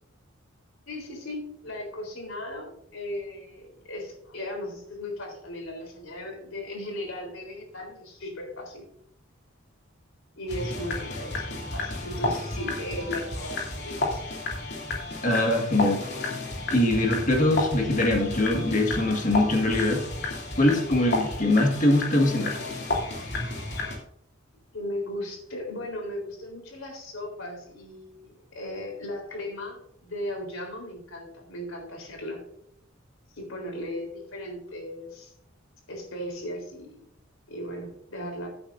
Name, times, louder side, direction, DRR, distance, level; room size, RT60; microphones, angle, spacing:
voice 1, 0.9-8.9 10.4-14.3 24.7-32.4 33.4-35.3 35.9-37.0 37.5-38.5, left 1 dB, 85° left, 1 dB, 3.8 m, -37 dB
sound 1, 10.5-24.0, left 2 dB, 55° left, 2.8 m, -32 dB
voice 2, 15.2-16.0 16.7-20.0 20.6-22.6, left 1 dB, 40° left, 1 dB, 1.7 m, -22 dB
15.0 x 8.7 x 2.6 m, 0.74 s
head